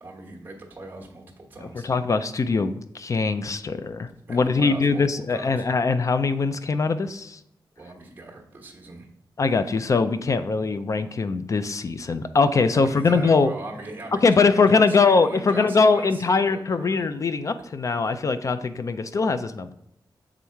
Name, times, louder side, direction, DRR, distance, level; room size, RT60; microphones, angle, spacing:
voice 1, 0.0-1.9 4.3-5.6 7.8-9.1 12.7-17.1, right 2 dB, 25° right, -1 dB, 1.2 m, -40 dB
voice 2, 1.8-7.4 9.4-13.5 14.2-19.7, left 4 dB, 45° left, 11 dB, 0.3 m, -22 dB
7.1 x 3.6 x 4.5 m, 0.73 s
wide cardioid pair, 150°, 8 cm